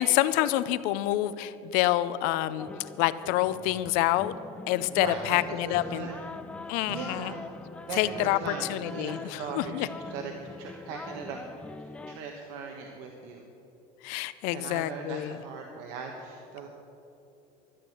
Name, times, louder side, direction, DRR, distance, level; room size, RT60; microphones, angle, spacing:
voice 1, 0.0-4.3 4.7-6.1 6.7-7.3 8.0-8.4 8.7-9.9 14.0-15.3, left 14 dB, 70° left, 14 dB, 0.6 m, -27 dB
sound 1, 2.6-12.2, left 3 dB, 10° left, 0.3 m, -43 dB
voice 2, 4.9-5.4 5.6-6.2 6.6-7.5 7.9-11.4 11.8-13.5 14.5-16.7, right 5 dB, 75° right, 2 dB, 1.4 m, -39 dB
13.0 x 9.2 x 8.0 m, 3.0 s
cardioid pair, 160°, 14 cm